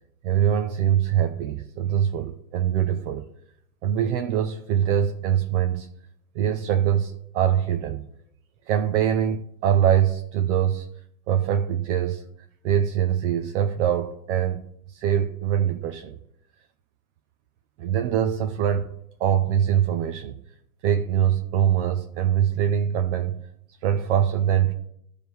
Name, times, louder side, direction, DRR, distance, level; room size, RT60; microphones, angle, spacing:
voice 1, 0.2-3.3 3.8-5.9 6.3-8.1 8.7-10.9 11.3-12.2 12.6-14.6 14.9-16.2 17.8-18.9 19.2-20.3 20.8-23.4 23.8-24.7, right 9 dB, 50° right, 6 dB, 0.7 m, -23 dB
14.0 x 5.0 x 3.2 m, 0.74 s
supercardioid pair, 140°, 46 cm